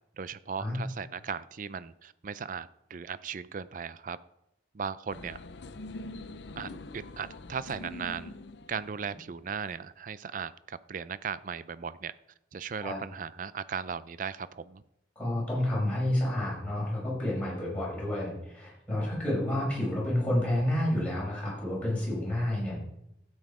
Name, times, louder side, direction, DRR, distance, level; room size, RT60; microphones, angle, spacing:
voice 1, 0.2-4.2 4.7-5.4 6.6-8.3 8.7-12.1 12.5-14.8, right 6 dB, 45° right, 16 dB, 0.4 m, -37 dB
sound 1, 5.1-9.6, left 2 dB, 70° left, 0.6 m, -44 dB
voice 2, 15.2-22.7, left 1 dB, 5° left, -6 dB, 5.7 m, -29 dB
12.5 x 8.9 x 4.8 m, 0.84 s
head